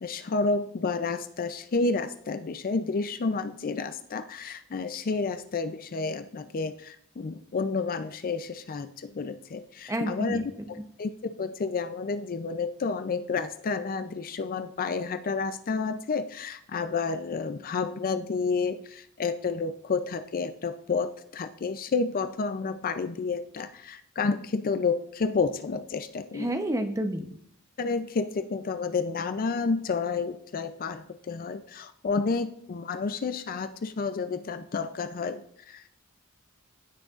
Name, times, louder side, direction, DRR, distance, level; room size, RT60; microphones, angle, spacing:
voice 1, 0.0-10.4 10.7-26.5 27.8-35.9, left 4 dB, 40° left, 11 dB, 0.4 m, -30 dB
voice 2, 9.9-10.4 26.3-27.3, right 1 dB, 15° right, 7 dB, 0.8 m, -29 dB
16.0 x 6.4 x 2.5 m, 0.67 s
head